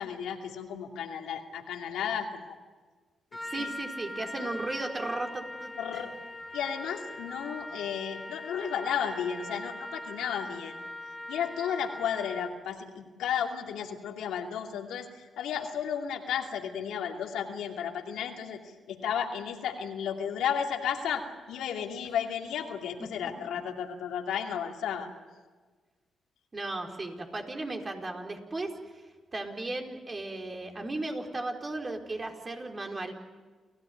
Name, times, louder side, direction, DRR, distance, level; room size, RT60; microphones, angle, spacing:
voice 1, 0.0-2.6 3.6-3.7 4.4-4.5 5.8-6.1 6.5-10.7 11.3-18.6 18.9-21.2 21.5-25.1, left 8 dB, 90° left, 2 dB, 2.5 m, -33 dB
Trumpet, 3.3-12.7, left 1 dB, 15° left, 2.3 m, -41 dB
voice 2, 3.4-6.0 26.5-29.0 29.3-33.1, right 2 dB, 35° right, 2 dB, 4.5 m, -36 dB
28.5 x 16.0 x 9.5 m, 1.4 s
cardioid pair, 65°, 0 cm